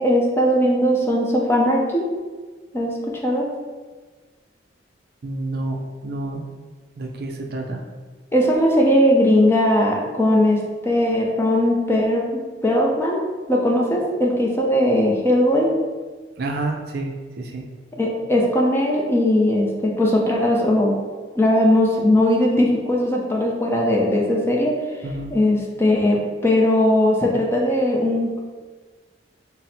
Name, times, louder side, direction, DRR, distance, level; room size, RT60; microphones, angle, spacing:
voice 1, 0.0-2.0 2.7-3.5 8.3-12.2 12.6-13.2 13.5-15.7 18.0-21.0 21.4-24.8 25.3-28.4, left 1 dB, 15° left, -2 dB, 0.4 m, -19 dB
voice 2, 5.2-6.5 7.0-7.8 16.4-17.1 17.4-17.7 25.0-25.3, right 2 dB, 55° right, 2 dB, 0.4 m, -29 dB
4.0 x 2.0 x 4.2 m, 1.4 s
head